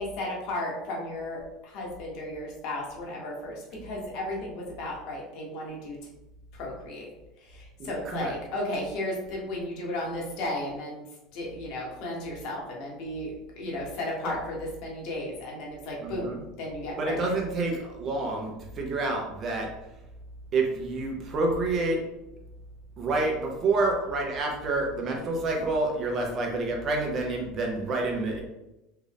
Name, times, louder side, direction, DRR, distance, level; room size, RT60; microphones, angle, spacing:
voice 1, 0.0-6.0 6.5-7.1 7.5-11.0 11.3-17.3, left 1 dB, 65° left, -2 dB, 1.3 m, -34 dB
voice 2, 7.8-8.3 14.2-14.4 16.0-16.4 17.0-19.7 20.5-22.0 23.0-28.4, right 2 dB, 35° right, 1 dB, 0.9 m, -28 dB
3.4 x 2.6 x 3.5 m, 0.95 s
supercardioid pair, 120°, 0 cm